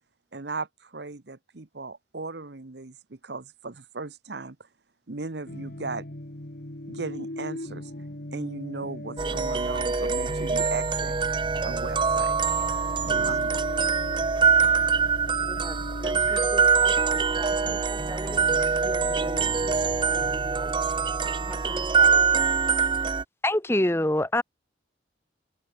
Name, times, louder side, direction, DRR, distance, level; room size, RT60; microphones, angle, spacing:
voice 1, 0.3-4.6 5.1-6.0 6.9-7.9 8.3-11.1 11.6-12.3 13.0-13.7, right 3 dB, 65° right, 1.1 m, -37 dB
sound 1, 5.4-20.6, left 1 dB, 55° left, 2.1 m, -41 dB
sound 2, 9.2-23.2, right 5 dB, 25° right, 0.5 m, -24 dB
voice 2, 15.2-19.7 20.0-21.0 21.3-22.6, equal, 10° right, 2.8 m, -43 dB
voice 3, 23.4-24.4, left 1 dB, 15° left, 1.2 m, -23 dB
open air
head